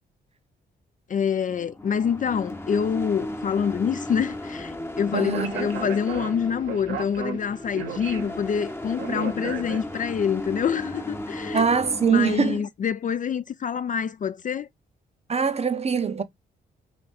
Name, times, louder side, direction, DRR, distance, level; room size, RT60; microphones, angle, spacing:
voice 1, 1.1-11.6 12.1-14.7, left 7 dB, 40° left, 0.4 m, -26 dB
sound 1, 1.5-12.6, left 1 dB, 10° left, 0.7 m, -36 dB
voice 2, 5.1-5.7 11.5-12.6 15.3-16.2, right 6 dB, 30° right, 0.6 m, -23 dB
Speech, 5.1-10.2, right 6 dB, 80° right, 1.0 m, -35 dB
3.2 x 2.6 x 4.3 m
supercardioid pair, 50°, 21 cm